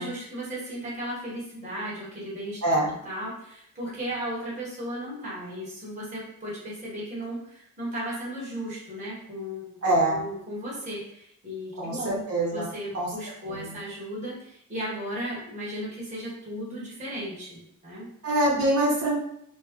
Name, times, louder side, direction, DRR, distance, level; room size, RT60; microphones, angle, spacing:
voice 1, 0.0-2.6 3.0-9.8 10.1-12.2 12.5-18.1, equal, 35° right, -6 dB, 1.5 m, -35 dB
voice 2, 2.6-2.9 9.8-10.2 11.8-12.7 12.9-13.1 13.5-13.8 18.2-19.2, right 1 dB, 85° right, -3 dB, 1.1 m, -24 dB
4.4 x 2.2 x 3.1 m, 0.72 s
head